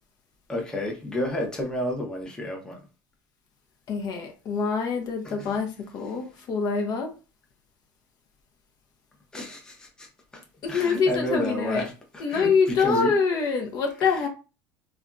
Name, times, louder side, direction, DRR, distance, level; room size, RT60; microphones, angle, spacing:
voice 1, 0.5-2.8 5.2-5.6 9.3-10.1 10.3-10.4 10.7-13.2 14.1-14.2, left 1 dB, 10° left, 0.7 m, -31 dB
voice 2, 3.9-7.1 10.6-11.9 12.2-14.3, left 5 dB, 45° left, 0.7 m, -25 dB
3.3 x 2.2 x 2.5 m
supercardioid pair, 125°, 9 cm